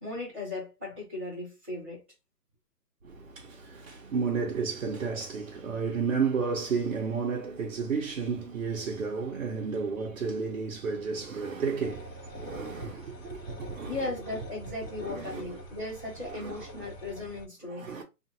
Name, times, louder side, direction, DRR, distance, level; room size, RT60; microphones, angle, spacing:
voice 1, 0.0-2.0 13.8-17.9, left 2 dB, 10° right, 0.8 m, -37 dB
voice 2, 3.7-12.0 12.3-13.9 15.0-15.5 16.4-16.6 17.8-18.0, right 5 dB, 50° right, 0.7 m, -32 dB
sound 1, 11.8-17.4, equal, 40° left, 1.2 m, -45 dB
2.7 x 2.4 x 2.6 m
hypercardioid pair, 170°, 49 cm